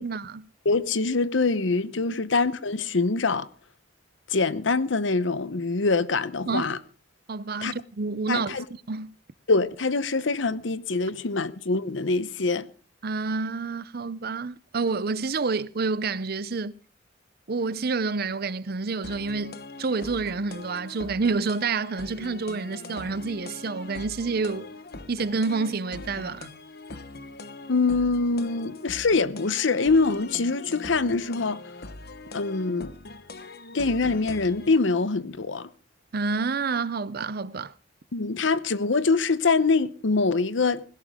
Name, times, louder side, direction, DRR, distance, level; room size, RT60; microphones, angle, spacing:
voice 1, 0.0-0.5 6.5-6.7 7.3-8.6 8.9-9.1 13.0-16.7 17.5-24.7 25.1-26.5 36.1-37.7, right 4 dB, 55° right, 0.6 m, -28 dB
voice 2, 0.6-3.5 4.3-6.8 7.6-7.7 8.3-8.6 9.5-12.7 27.7-31.6 32.3-32.9 33.7-35.7 38.1-40.8, left 3 dB, 80° left, 0.9 m, -24 dB
sound 1, 19.0-34.8, left 2 dB, 55° left, 1.1 m, -42 dB
17.5 x 16.5 x 3.7 m
head